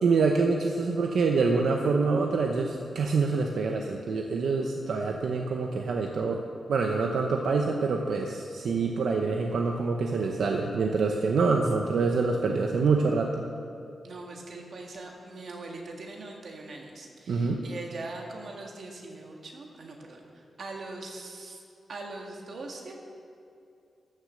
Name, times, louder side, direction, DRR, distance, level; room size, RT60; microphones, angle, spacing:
voice 1, 0.0-6.4 6.7-13.5 17.3-17.6, right 4 dB, 85° right, 2 dB, 0.7 m, -26 dB
voice 2, 14.0-21.6 21.9-22.9, right 2 dB, 60° right, 1 dB, 1.7 m, -41 dB
13.0 x 6.8 x 6.3 m, 2.6 s
wide cardioid pair, 150°, 0 cm